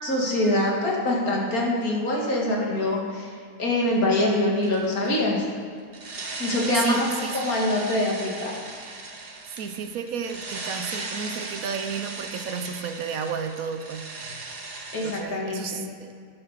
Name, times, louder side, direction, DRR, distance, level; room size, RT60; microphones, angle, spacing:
voice 1, 0.0-3.3 3.6-5.4 6.4-8.5 14.9-15.8, left 1 dB, 75° left, -2 dB, 2.3 m, -24 dB
sound 1, 4.6-5.1 5.9-15.2, right 3 dB, 45° right, 1.3 m, -37 dB
voice 2, 6.7-7.4 9.5-14.0 15.0-16.1, right 6 dB, 70° right, 7 dB, 1.1 m, -32 dB
10.5 x 5.7 x 6.5 m, 2.1 s
omnidirectional pair, 1.6 m